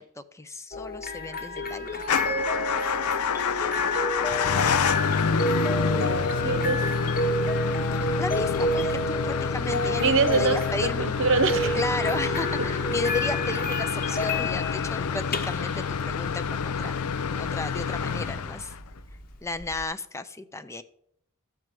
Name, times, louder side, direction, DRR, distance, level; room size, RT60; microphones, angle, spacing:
voice 1, 0.0-2.0 8.2-11.1 11.5-17.0 17.3-18.7 19.4-20.8, left 2 dB, 15° left, 11 dB, 0.5 m, -34 dB
sound 1, 0.7-19.8, left 1 dB, 40° left, 1.1 m, -30 dB
Motor vehicle (road) / Engine starting / Idling, 2.0-19.0, left 6 dB, 75° left, 0.5 m, -28 dB
voice 2, 5.6-6.8 10.0-11.8 16.8-16.9, right 4 dB, 60° right, 11 dB, 0.9 m, -25 dB
13.5 x 4.7 x 7.6 m, 0.70 s
head